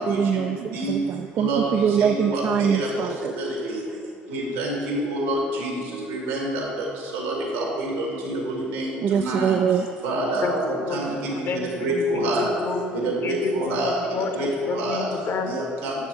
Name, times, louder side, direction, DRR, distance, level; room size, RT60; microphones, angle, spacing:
voice 1, 0.1-3.3 9.0-9.9, right 8 dB, 50° right, 7 dB, 0.4 m, -23 dB
voice 2, 2.0-2.4 2.7-2.8 4.3-5.7 6.1-6.6 7.1-8.4 8.7-9.5 10.0-10.6 10.9-11.1 11.8-12.5 12.9-13.9 14.4-14.5 14.8-15.0 15.5-15.9, right 1 dB, 85° right, -2 dB, 2.5 m, -26 dB
voice 3, 10.8-14.3 14.7-15.5, left 4 dB, 50° left, 6 dB, 1.1 m, -30 dB
9.7 x 6.9 x 4.5 m, 2.4 s
hypercardioid pair, 65°, 5 cm